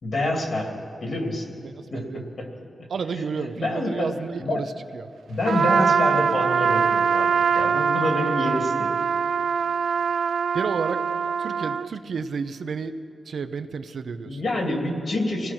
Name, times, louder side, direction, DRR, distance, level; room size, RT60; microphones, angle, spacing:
voice 1, 0.0-1.6 1.9-2.5 2.8-2.9 3.1-3.2 3.5-4.1 4.4-4.6 5.3-8.9 14.3-15.5, left 1 dB, 45° left, 2 dB, 2.6 m, -27 dB
voice 2, 1.6-2.3 2.9-5.1 10.5-12.9 13.2-14.4, right 5 dB, 60° right, 8 dB, 0.8 m, -31 dB
Trumpet, 5.5-11.9, right 6 dB, 80° right, 0.4 m, -23 dB
25.5 x 17.0 x 6.0 m, 2.6 s
wide cardioid pair, 175°, 0 cm